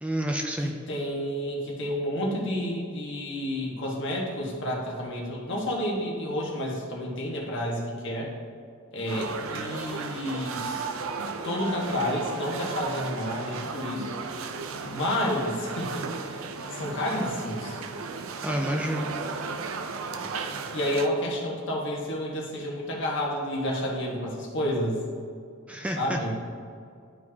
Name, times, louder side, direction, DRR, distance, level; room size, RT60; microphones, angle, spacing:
voice 1, 0.0-0.7 18.4-19.1 25.7-26.3, right 1 dB, 5° right, 2 dB, 0.3 m, -29 dB
voice 2, 0.6-8.3 8.9-10.9 11.4-14.1 14.8-17.8 20.1-20.3 20.7-25.0 26.0-26.3, left 1 dB, 60° left, -2 dB, 1.4 m, -30 dB
sound 1, 9.1-21.1, right 4 dB, 75° right, 0.5 m, -35 dB
11.5 x 4.6 x 2.8 m, 2.3 s
head